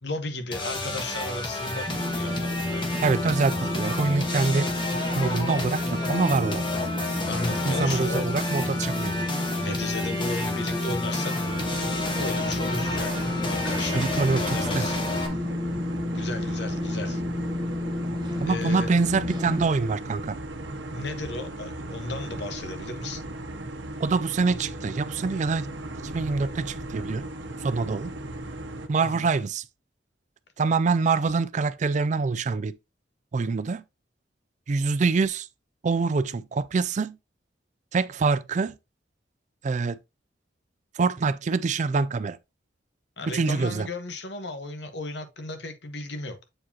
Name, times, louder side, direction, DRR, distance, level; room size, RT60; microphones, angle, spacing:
voice 1, 0.0-2.9 7.3-8.4 9.6-11.5 12.2-15.0 15.3-15.4 16.1-17.2 18.4-18.9 20.9-23.2 29.0-29.3 43.2-46.4, left 2 dB, 70° left, 1.1 m, -35 dB
sound 1, 0.5-15.3, left 2 dB, 25° left, 1.3 m, -31 dB
sound 2, 1.9-19.6, left 1 dB, 25° right, 1.2 m, -30 dB
voice 2, 3.0-4.7 5.2-6.7 7.6-9.1 13.9-14.9 18.4-20.4 24.0-25.7 26.0-27.3 27.6-28.1 28.9-29.6 30.6-32.8 33.3-33.8 34.7-35.5 35.8-37.2 37.9-38.8 39.6-40.0 40.9-42.4 43.3-43.9, right 4 dB, 40° right, 0.4 m, -25 dB
sound 3, 11.5-28.9, right 1 dB, 80° right, 0.9 m, -37 dB
7.7 x 4.7 x 2.8 m
head